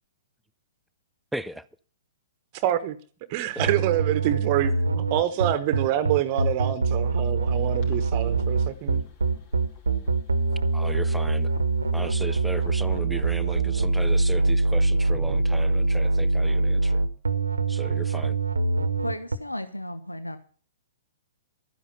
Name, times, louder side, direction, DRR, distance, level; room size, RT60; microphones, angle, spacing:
voice 1, 1.3-1.7 3.6-3.7 10.7-11.5 11.9-17.0 17.7-18.4, right 1 dB, ahead, 0.6 m, -36 dB
voice 2, 2.5-3.0 3.3-9.0, right 12 dB, 35° right, 1.1 m, -26 dB
sound 1, 3.6-19.4, right 3 dB, 75° right, 1.1 m, -24 dB
sound 2, 7.4-13.0, left 5 dB, 40° left, 4.4 m, -49 dB
voice 3, 19.0-20.4, left 1 dB, 85° left, 1.1 m, -34 dB
12.5 x 10.0 x 5.6 m
figure-of-eight pair, 110°, 0 cm